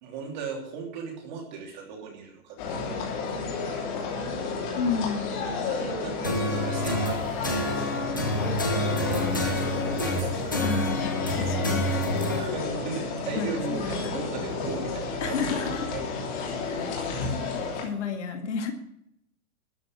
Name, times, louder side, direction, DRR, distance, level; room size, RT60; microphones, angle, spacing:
voice 1, 0.0-3.1 3.4-3.9 5.6-8.3 8.7-11.4 12.3-16.8, right 5 dB, 30° right, 1 dB, 3.1 m, -39 dB
sound 1, 2.6-17.8, left 4 dB, 30° left, 3.1 m, -31 dB
voice 2, 4.7-5.5 10.6-11.9 13.3-14.2 15.2-15.9 16.6-17.0 17.3-18.7, left 6 dB, 50° left, 5 dB, 2.0 m, -32 dB
sound 2, 6.2-12.4, left 1 dB, 15° left, 0.5 m, -28 dB
13.0 x 6.6 x 8.8 m, 0.75 s
hypercardioid pair, 180°, 45 cm